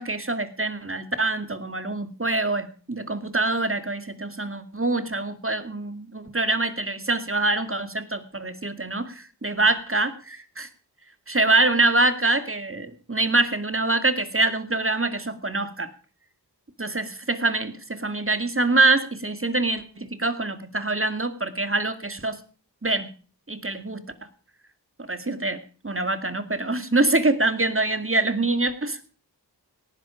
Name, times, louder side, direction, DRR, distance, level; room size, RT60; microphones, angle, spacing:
voice 1, 0.0-10.7 11.3-15.9 16.8-22.4 22.8-23.1 23.5-24.0 25.0-29.0, right 2 dB, 30° right, 10 dB, 2.2 m, -25 dB
18.0 x 11.0 x 5.0 m, 0.40 s
cardioid pair, 40°, 42 cm